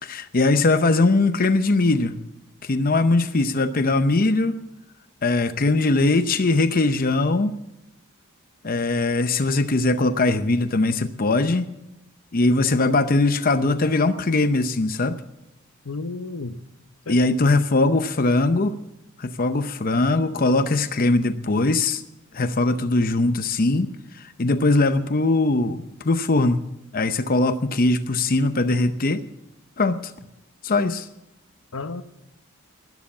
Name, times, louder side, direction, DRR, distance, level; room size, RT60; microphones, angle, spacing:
voice 1, 0.0-2.1 2.6-4.6 5.2-7.6 8.6-11.7 12.3-15.2 17.1-18.8 19.2-22.0 22.3-23.9 24.1-26.6 26.9-29.2 29.8-30.1 30.6-31.1, left 2 dB, 40° left, 0.7 m, -21 dB
voice 2, 15.8-16.6 17.1-17.2 31.7-32.0, left 3 dB, 80° left, 0.9 m, -31 dB
12.5 x 11.0 x 8.4 m
head